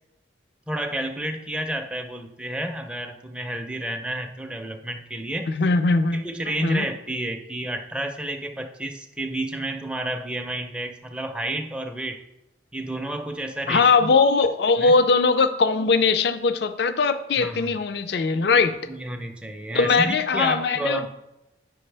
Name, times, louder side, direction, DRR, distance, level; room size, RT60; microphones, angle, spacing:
voice 1, 0.7-5.5 6.1-12.2 12.7-14.1 14.8-14.9 17.4-17.7 18.9-21.1, right 1 dB, 5° right, 4 dB, 0.5 m, -30 dB
voice 2, 5.5-6.3 6.6-6.9 13.7-18.8 19.7-21.1, left 4 dB, 60° left, 11 dB, 0.4 m, -20 dB
8.5 x 5.9 x 3.3 m, 0.92 s
head